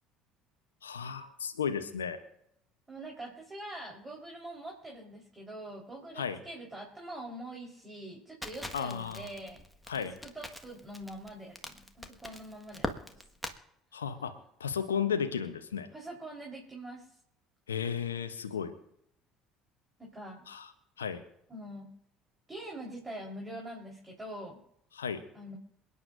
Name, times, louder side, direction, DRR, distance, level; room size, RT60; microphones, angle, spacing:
voice 1, 0.8-2.2 6.2-6.4 8.7-9.3 9.9-10.1 13.9-14.3 14.6-15.9 17.7-18.7 20.5-20.7 21.0-21.2 24.9-25.2, left 7 dB, 80° left, 8 dB, 0.8 m, -34 dB
voice 2, 2.9-9.6 10.0-13.2 15.9-17.2 20.0-20.5 21.5-21.9 22.5-24.6 25.3-25.6, right 1 dB, 15° right, -1 dB, 4.1 m, -44 dB
Crackle, 8.4-13.6, left 1 dB, ahead, 1.6 m, -41 dB
28.0 x 9.7 x 2.6 m, 0.75 s
figure-of-eight pair, 60°, 0 cm